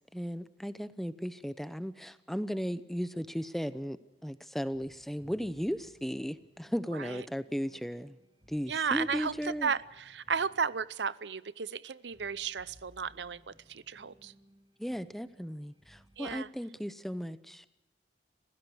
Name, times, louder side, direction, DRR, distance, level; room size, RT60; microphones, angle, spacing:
voice 1, 0.1-8.2 8.5-9.7 14.8-17.6, equal, ahead, 13 dB, 0.8 m, -36 dB
sound 1, 3.1-4.1 4.4-4.5 4.6-16.4, equal, 30° right, 3.4 m, -62 dB
voice 2, 8.7-9.3 9.6-14.3 16.2-16.5, right 6 dB, 85° right, 18 dB, 0.7 m, -34 dB
29.0 x 15.5 x 6.3 m, 0.95 s
head